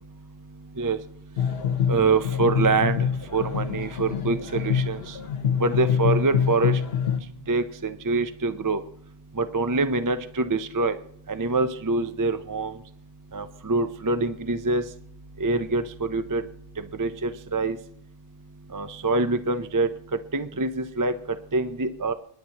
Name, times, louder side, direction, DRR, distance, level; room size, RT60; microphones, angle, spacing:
sound 1, 1.4-7.2, left 7 dB, 70° left, 1.2 m, -25 dB
voice 1, 1.9-3.0 3.3-5.0 5.6-6.7 7.5-8.8 9.4-10.9 11.3-12.7 13.3-14.8 15.4-15.8 16.1-16.4 17.0-17.8 18.7-19.9 20.3-21.1 21.5-22.1, right 3 dB, 25° right, 11 dB, 0.4 m, -25 dB
26.5 x 10.5 x 2.9 m, 0.68 s
omnidirectional pair, 1.1 m